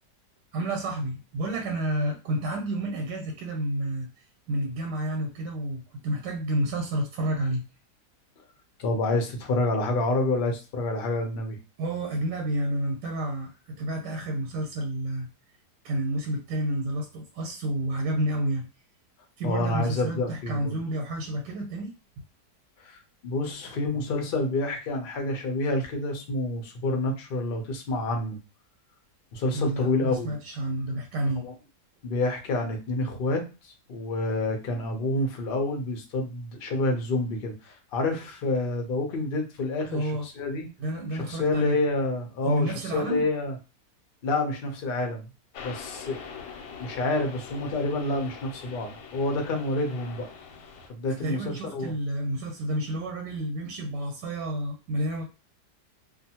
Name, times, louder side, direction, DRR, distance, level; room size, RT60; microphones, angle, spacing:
voice 1, 0.5-4.1 4.5-7.6 11.8-15.3 15.8-18.7 19.4-21.9 29.5-31.5 39.9-40.3 40.8-41.8 42.4-43.2 51.1-55.2, right 1 dB, 85° right, 2 dB, 1.2 m, -30 dB
voice 2, 8.8-11.6 19.4-20.7 22.8-28.4 29.3-30.3 31.4-31.5 32.0-40.7 41.1-43.5 44.2-45.2 45.6-46.2 46.8-50.3 50.9-51.9, left 2 dB, 60° left, 2 dB, 0.5 m, -28 dB
sound 1, 45.5-50.9, left 6 dB, 90° left, 1.2 m, -43 dB
2.5 x 2.4 x 2.8 m, 0.30 s
omnidirectional pair, 1.8 m